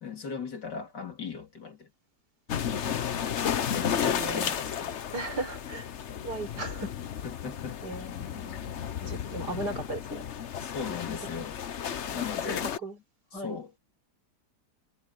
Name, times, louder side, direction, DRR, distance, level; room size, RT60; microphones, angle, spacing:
voice 1, 0.0-1.9 3.7-5.0 7.2-7.8 10.6-11.6 11.9-12.7 13.3-13.8, left 6 dB, 90° left, 3.7 m, -38 dB
sound 1, 2.5-12.8, left 8 dB, 50° left, 1.0 m, -33 dB
voice 2, 4.1-4.6 5.1-5.9 6.2-6.9 7.8-8.6 9.0-10.2 12.1-12.2 12.8-13.0 13.3-13.6, right 2 dB, 75° right, 5.7 m, -36 dB
omnidirectional pair, 1.8 m